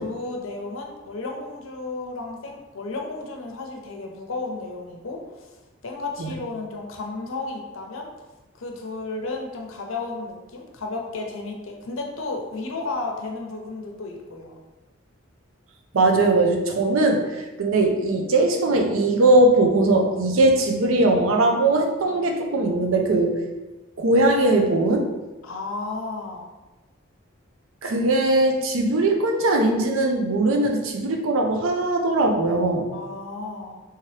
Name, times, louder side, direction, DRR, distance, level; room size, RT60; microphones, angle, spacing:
voice 1, 0.0-5.5 5.8-8.1 8.5-14.6 25.4-26.5 32.9-33.8, left 3 dB, 85° left, 1 dB, 0.6 m, -33 dB
voice 2, 15.9-23.4 24.0-25.1 27.8-32.9, right 2 dB, 85° right, 3 dB, 0.5 m, -20 dB
3.5 x 2.8 x 3.2 m, 1.1 s
head